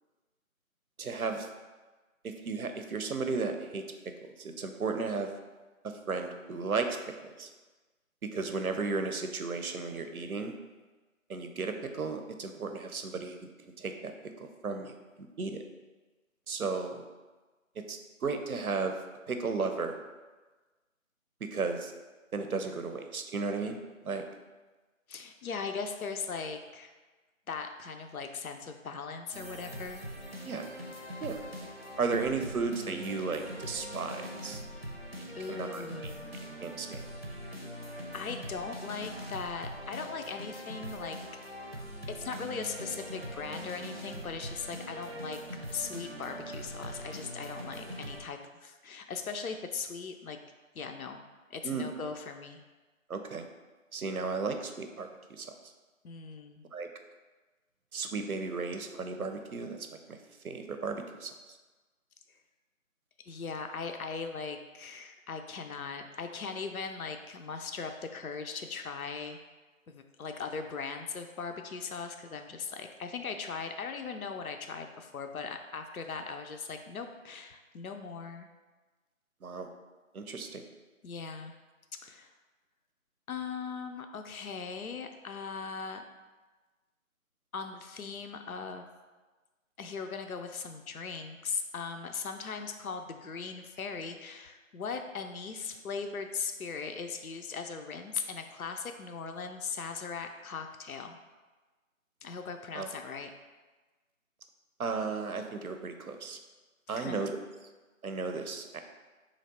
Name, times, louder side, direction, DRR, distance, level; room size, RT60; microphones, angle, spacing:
voice 1, 1.0-1.5 2.2-5.3 5.8-7.5 8.2-10.5 11.3-13.5 13.8-15.6 16.5-17.0 17.8-18.9 19.3-20.0 21.4-21.9 22.3-23.8 24.0-24.2 30.5-30.7 31.2-31.4 32.0-34.6 35.2-36.1 36.6-37.1 51.6-51.9 53.1-53.5 53.9-55.5 56.7-56.9 57.9-59.8 60.1-60.2 60.4-61.3 79.4-79.7 80.1-80.6 102.7-102.9 104.8-106.4 106.9-107.3 108.0-108.8, right 4 dB, 85° right, 6 dB, 0.6 m, -34 dB
voice 2, 25.1-26.9 27.5-30.0 35.3-36.3 38.1-41.2 42.1-45.4 45.7-50.4 50.7-51.2 51.5-52.6 56.0-56.6 63.2-69.4 69.9-78.5 81.0-81.5 81.9-82.3 83.3-86.0 87.5-88.9 89.8-101.2 102.2-103.3 106.9-107.3, left 5 dB, 80° left, 6 dB, 0.5 m, -39 dB
sound 1, 29.3-48.2, equal, 45° right, 0.6 m, -42 dB
3.9 x 3.2 x 3.7 m, 1.2 s
figure-of-eight pair, 170°, 42 cm